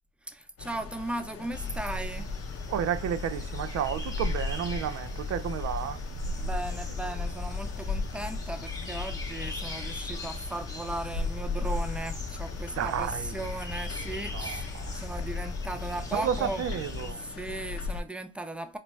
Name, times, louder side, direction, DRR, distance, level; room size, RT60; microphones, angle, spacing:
voice 1, 0.3-2.3 6.4-16.7 17.1-18.8, right 2 dB, 5° right, 0.4 m, -37 dB
sound 1, 0.6-18.0, left 3 dB, 50° left, 0.6 m, -37 dB
sound 2, 1.5-17.1, left 3 dB, 10° left, 1.0 m, -38 dB
voice 2, 2.7-6.0 12.8-13.3 14.3-15.0 16.1-17.2, right 9 dB, 60° right, 0.5 m, -31 dB
4.1 x 2.2 x 3.0 m
cardioid pair, 90°, 30 cm